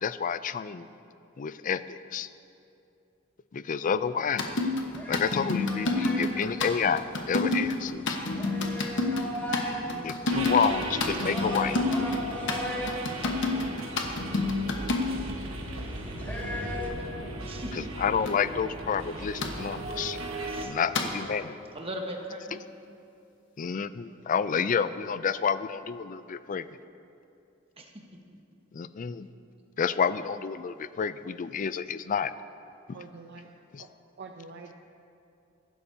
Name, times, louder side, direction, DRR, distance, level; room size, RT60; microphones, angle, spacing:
voice 1, 0.0-0.9 1.4-2.3 3.5-4.5 5.1-7.0 7.3-8.2 10.0-11.8 17.7-20.2 20.6-21.5 22.5-22.6 23.6-26.6 28.7-29.3 29.8-32.3 32.9-33.0 33.7-33.8, left 6 dB, 40° left, 13 dB, 0.4 m, -29 dB
sound 1, 4.4-15.3 18.3-18.4 19.4-19.5 20.9-21.1, left 3 dB, 65° left, 1.2 m, -28 dB
sound 2, 4.8-16.9, equal, 10° left, 1.5 m, -39 dB
voice 2, 9.4-10.2 17.4-17.7 20.5-20.7 21.7-22.7 27.8-27.9, equal, 30° right, 1 dB, 1.2 m, -39 dB
sound 3, 10.3-20.7, right 2 dB, 90° right, 1.4 m, -37 dB
voice 3, 32.9-33.5 33.8-33.9 34.2-34.7, right 4 dB, 55° right, 3 dB, 0.6 m, -45 dB
21.5 x 11.0 x 2.8 m, 2.6 s
head